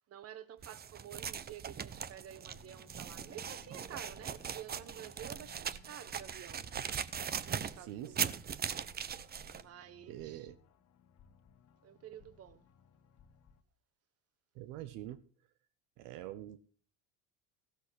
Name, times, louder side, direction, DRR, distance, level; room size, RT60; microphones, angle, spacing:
voice 1, 0.1-6.7 7.3-8.2 9.5-10.5 11.8-12.6, right 10 dB, 45° right, 1.3 m, -50 dB
sound 1, 0.6-9.6, right 8 dB, 25° right, 0.8 m, -40 dB
sound 2, 2.3-13.6, left 7 dB, 50° left, 1.5 m, -63 dB
voice 2, 7.7-8.4 10.1-10.6 14.5-15.2 16.0-16.6, right 13 dB, 70° right, 0.9 m, -45 dB
15.5 x 7.9 x 6.6 m
supercardioid pair, 115°, 35 cm